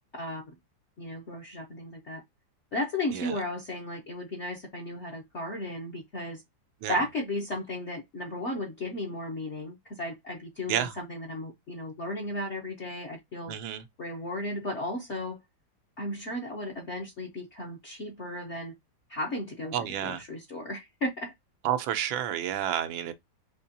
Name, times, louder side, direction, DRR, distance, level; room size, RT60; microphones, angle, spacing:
voice 1, 0.1-0.6 1.0-2.2 2.7-6.4 6.9-13.5 14.0-15.4 16.0-18.7 19.1-21.3, left 1 dB, 50° left, 0.9 m, -35 dB
voice 2, 13.5-13.8 19.7-20.2 21.6-23.1, right 10 dB, 85° right, 1.5 m, -30 dB
4.2 x 2.9 x 2.6 m
omnidirectional pair, 2.1 m